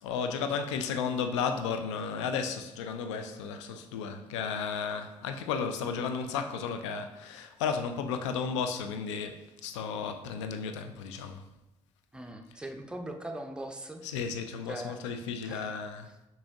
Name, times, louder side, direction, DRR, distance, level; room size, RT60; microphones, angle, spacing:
voice 1, 0.0-11.4 14.0-16.1, left 6 dB, 70° left, 0.4 m, -33 dB
voice 2, 12.1-14.0 14.7-15.0 15.4-15.7, right 1 dB, 5° right, 0.5 m, -40 dB
6.1 x 2.8 x 2.8 m
figure-of-eight pair, 45°, 16 cm